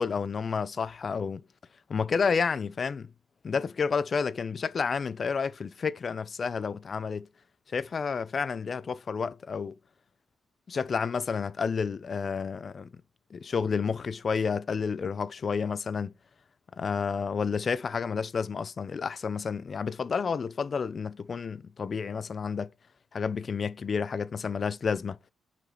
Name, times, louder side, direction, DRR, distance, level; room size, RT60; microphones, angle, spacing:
voice 1, 0.0-1.4 1.9-3.1 3.4-7.3 7.7-9.8 10.7-12.9 13.3-16.1 16.8-22.7 23.1-25.2, left 5 dB, 40° left, 0.4 m, -30 dB
6.0 x 3.8 x 4.2 m
cardioid pair, 140°, 0 cm